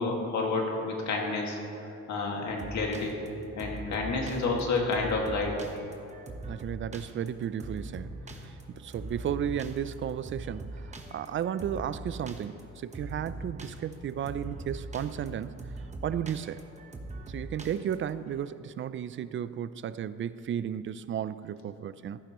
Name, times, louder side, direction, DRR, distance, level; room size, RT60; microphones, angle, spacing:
voice 1, 0.0-3.1 3.6-5.6, left 3 dB, 70° left, 0 dB, 2.1 m, -30 dB
sound 1, 2.5-18.5, right 2 dB, 25° right, 1.2 m, -42 dB
voice 2, 6.4-15.6 16.0-16.6 17.3-22.2, right 9 dB, 40° right, 15 dB, 0.4 m, -34 dB
14.5 x 11.5 x 3.1 m, 2.7 s
cardioid pair, 90°, 30 cm